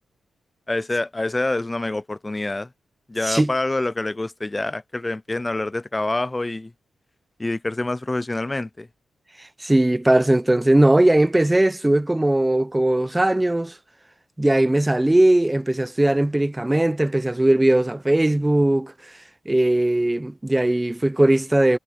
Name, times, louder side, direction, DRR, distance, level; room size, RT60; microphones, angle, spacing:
voice 1, 0.7-2.7 3.1-6.7 7.4-8.9, left 2 dB, 20° left, 0.5 m, -26 dB
voice 2, 9.6-13.7 14.4-18.9 19.5-21.8, right 1 dB, 15° right, 0.9 m, -19 dB
cardioid pair, 80°, 0 cm